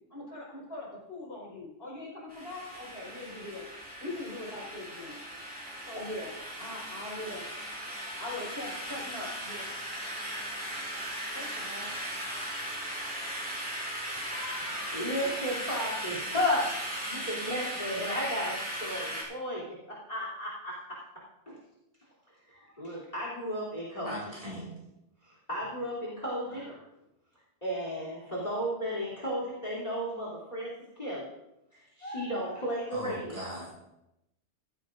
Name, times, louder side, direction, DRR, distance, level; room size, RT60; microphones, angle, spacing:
voice 1, 0.1-3.7 4.0-5.2 5.9-6.3 6.6-7.4 7.8-9.7 11.3-12.0, left 2 dB, 55° left, -5 dB, 5.2 m, -41 dB
sound 1, 2.3-19.2, right 1 dB, 5° right, 4.5 m, -37 dB
voice 2, 14.1-19.8 20.1-20.7 21.5-21.6 22.5-24.1 25.5-26.8 27.6-30.7 31.0-31.3 32.0-33.4, equal, 35° left, -4 dB, 3.3 m, -34 dB
voice 3, 24.0-24.7 32.9-33.7, equal, 30° right, -5 dB, 5.9 m, -39 dB
15.5 x 14.5 x 2.6 m, 0.87 s
omnidirectional pair, 1.2 m